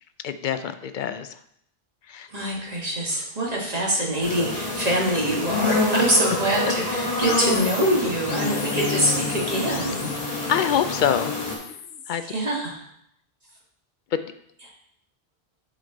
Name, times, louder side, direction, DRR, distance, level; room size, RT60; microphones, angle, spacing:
voice 1, 0.2-1.4 2.1-2.3 10.5-11.3 12.1-12.2 14.1-14.2, left 8 dB, 60° left, 10 dB, 0.6 m, -25 dB
voice 2, 2.3-10.1 12.2-12.8, right 1 dB, 40° right, -3 dB, 1.7 m, -24 dB
sound 1, 4.2-11.5, left 2 dB, 35° left, 1.7 m, -27 dB
sound 2, 7.2-12.3, left 7 dB, 85° left, 0.9 m, -37 dB
7.9 x 5.0 x 3.9 m, 0.70 s
omnidirectional pair, 1.1 m